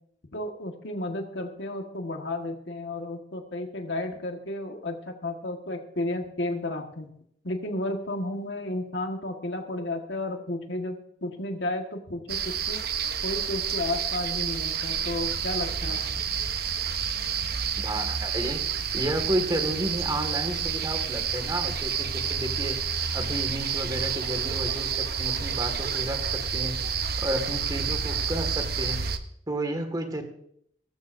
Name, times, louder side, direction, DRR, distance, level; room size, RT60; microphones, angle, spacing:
voice 1, 0.3-7.1 7.4-12.8 13.2-16.0, left 2 dB, 80° left, 3 dB, 1.7 m, -32 dB
sound 1, 12.3-29.2, right 7 dB, 60° right, 0.9 m, -29 dB
voice 2, 17.8-18.6 18.9-22.8 23.1-24.9 25.2-26.2 26.5-26.7 27.2-29.0 29.5-30.2, right 1 dB, 25° right, 5 dB, 2.0 m, -31 dB
18.5 x 14.0 x 2.7 m, 0.70 s
head